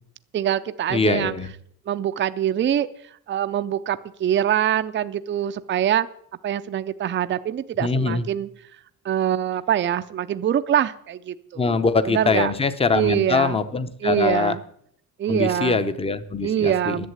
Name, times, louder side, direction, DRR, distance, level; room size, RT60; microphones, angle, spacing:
voice 1, 0.3-1.3 1.9-2.9 3.3-6.1 6.4-8.5 9.0-12.5 12.9-13.6 14.0-14.6 15.2-15.8 16.4-17.1, right 10 dB, 30° right, 11 dB, 0.4 m, -24 dB
voice 2, 0.9-1.5 7.8-8.2 11.6-14.6 15.3-17.1, left 4 dB, 15° left, 12 dB, 0.7 m, -23 dB
11.0 x 8.0 x 8.0 m, 0.67 s
cardioid pair, 170°, 37 cm